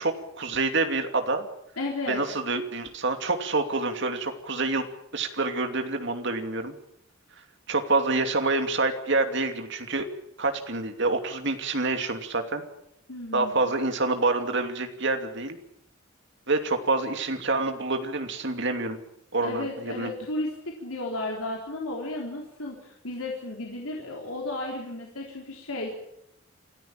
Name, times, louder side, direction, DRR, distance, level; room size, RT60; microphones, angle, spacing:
voice 1, 0.0-1.5 2.1-4.8 5.1-6.7 7.7-10.1 10.4-12.6 13.3-15.6 16.5-19.0 19.3-20.1, right 3 dB, 60° right, 6 dB, 2.8 m, -27 dB
voice 2, 1.8-2.2 13.1-13.7 19.4-25.9, left 2 dB, 90° left, -1 dB, 3.9 m, -34 dB
27.5 x 14.5 x 8.9 m, 0.77 s
head